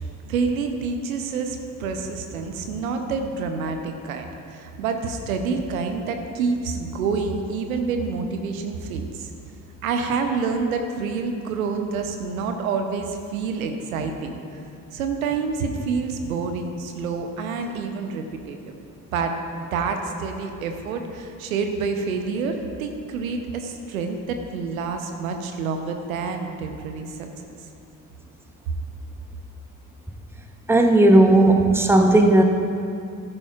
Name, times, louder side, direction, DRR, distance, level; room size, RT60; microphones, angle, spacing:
voice 1, 0.2-9.3 9.8-14.4 14.9-18.7 19.1-27.5, right 4 dB, 75° right, 5 dB, 0.8 m, -28 dB
voice 2, 30.7-32.4, right 1 dB, 5° right, 4 dB, 0.9 m, -15 dB
14.0 x 9.9 x 2.4 m, 2.5 s
figure-of-eight pair, 50°, 42 cm